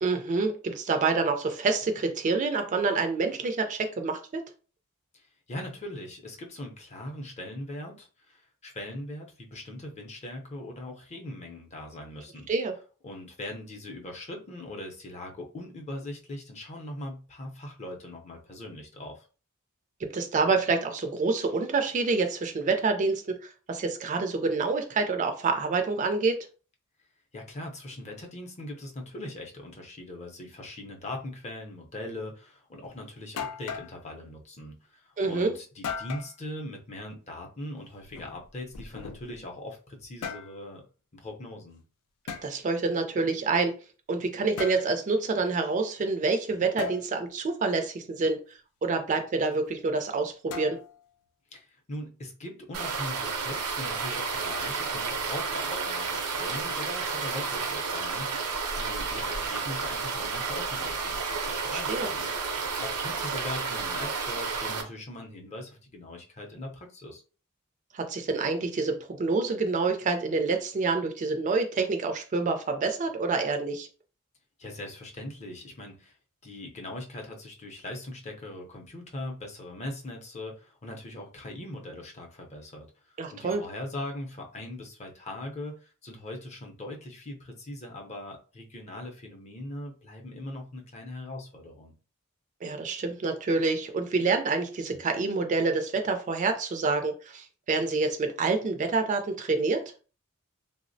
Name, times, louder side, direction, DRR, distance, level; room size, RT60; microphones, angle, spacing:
voice 1, 0.0-4.4 12.5-12.7 20.0-23.4 23.7-26.4 35.2-35.5 42.4-43.7 44.1-48.4 48.8-50.8 61.7-62.1 67.9-73.9 83.2-83.6 92.6-99.8, right 4 dB, 35° right, 5 dB, 0.3 m, -27 dB
voice 2, 5.1-12.5 13.0-19.3 27.3-40.8 41.1-41.8 51.5-62.3 62.6-67.2 74.6-76.2 76.4-91.9, left 1 dB, 30° left, 1 dB, 0.5 m, -40 dB
sound 1, 32.9-33.0 33.4-33.9 35.8-36.3 38.0-39.4 40.0-40.5 42.3-42.5 44.6-44.9 46.8-47.0 50.5-51.0, left 6 dB, 85° left, 0.4 m, -37 dB
sound 2, 52.7-64.8, right 5 dB, 80° right, 0.5 m, -31 dB
3.3 x 2.0 x 2.6 m, 0.37 s
head